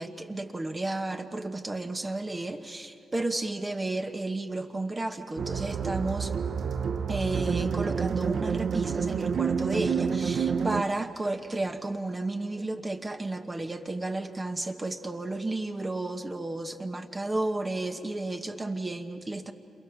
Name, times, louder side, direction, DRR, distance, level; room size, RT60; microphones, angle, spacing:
voice 1, 0.0-6.3 7.1-19.5, right 2 dB, 20° right, 6 dB, 1.1 m, -32 dB
sound 1, 5.4-10.8, right 6 dB, 55° right, 0.7 m, -28 dB
29.5 x 27.5 x 6.9 m, 2.6 s
cardioid pair, 115°, 0 cm